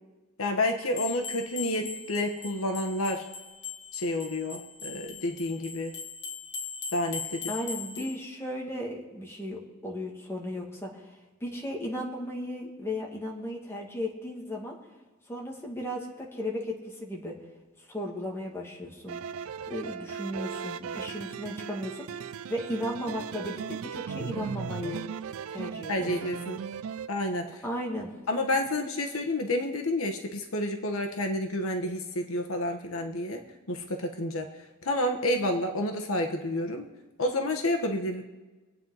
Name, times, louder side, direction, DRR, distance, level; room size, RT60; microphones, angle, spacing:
voice 1, 0.4-3.2 3.9-6.0 6.9-7.5 8.0-8.1 25.9-26.6 27.1-27.4 28.3-33.4 33.7-34.5 34.8-36.8 37.2-38.2, left 1 dB, 75° left, 4 dB, 1.3 m, -29 dB
sound 1, 0.9-8.1, left 6 dB, 55° left, 1.6 m, -40 dB
voice 2, 7.5-11.0 11.4-14.8 15.3-17.4 17.9-19.2 19.7-25.0 25.5-26.1 27.6-28.1, left 1 dB, 10° left, -2 dB, 2.3 m, -35 dB
sound 2, 19.1-27.1, right 7 dB, 75° right, 0.4 m, -37 dB
24.5 x 8.9 x 4.1 m, 1.2 s
head